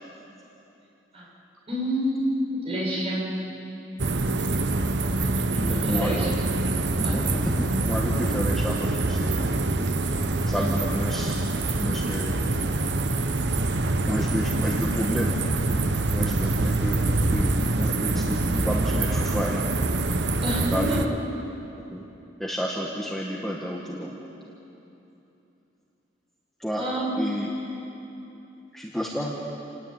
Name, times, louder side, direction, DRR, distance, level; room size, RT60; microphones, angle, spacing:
voice 1, 1.7-3.4 5.4-6.3 6.9-7.2 20.4-21.0 26.7-27.4, equal, 30° right, -4 dB, 7.2 m, -28 dB
sound 1, 4.0-21.1, right 2 dB, 60° right, 1.1 m, -25 dB
voice 2, 5.8-6.1 7.1-9.5 10.5-11.4 11.8-12.5 14.1-15.4 16.1-19.6 20.7-21.0 21.9-22.0 22.4-24.2 26.6-26.8 27.2-27.5 28.7-29.3, equal, ahead, -4 dB, 1.9 m, -30 dB
29.0 x 19.0 x 9.2 m, 3.0 s
head